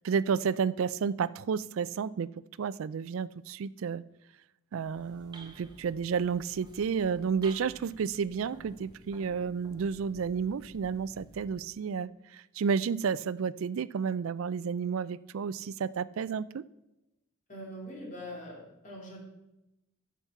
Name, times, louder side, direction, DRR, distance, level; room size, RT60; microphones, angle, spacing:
voice 1, 0.0-2.3 2.6-4.0 4.7-16.6, right 6 dB, 70° right, 18 dB, 0.4 m, -31 dB
sound 1, 4.7-11.7, right 1 dB, 20° right, 1.0 m, -53 dB
voice 2, 17.5-19.2, equal, 35° left, -3 dB, 3.4 m, -43 dB
9.9 x 7.2 x 5.8 m, 0.90 s
head